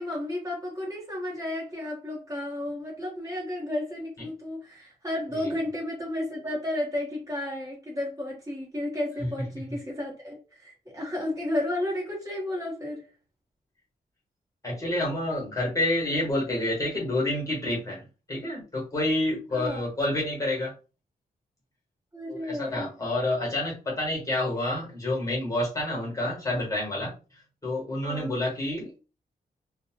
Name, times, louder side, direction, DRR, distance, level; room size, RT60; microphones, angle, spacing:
voice 1, 0.0-13.0 19.5-19.8 22.1-22.9 28.0-28.4, left 1 dB, 20° right, -4 dB, 1.0 m, -32 dB
voice 2, 14.6-18.0 18.3-20.7 22.3-27.1 27.6-29.0, left 1 dB, 20° left, -3 dB, 1.1 m, -28 dB
2.6 x 2.1 x 2.8 m, 0.32 s
wide cardioid pair, 170°, 16 cm